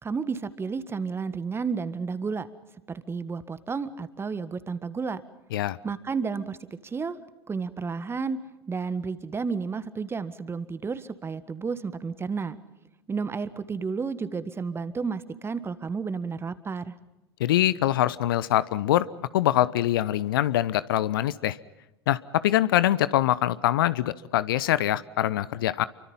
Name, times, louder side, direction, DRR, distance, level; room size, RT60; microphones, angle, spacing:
voice 1, 0.0-2.5 2.9-5.2 5.8-6.6 6.8-7.2 7.5-8.4 8.7-12.6 13.1-16.9, right 5 dB, 20° right, 14 dB, 1.7 m, -31 dB
voice 2, 17.4-19.1 19.3-21.6 22.1-25.9, left 13 dB, 60° left, 17 dB, 0.9 m, -24 dB
29.5 x 24.5 x 5.6 m, 0.98 s
figure-of-eight pair, 80°, 13 cm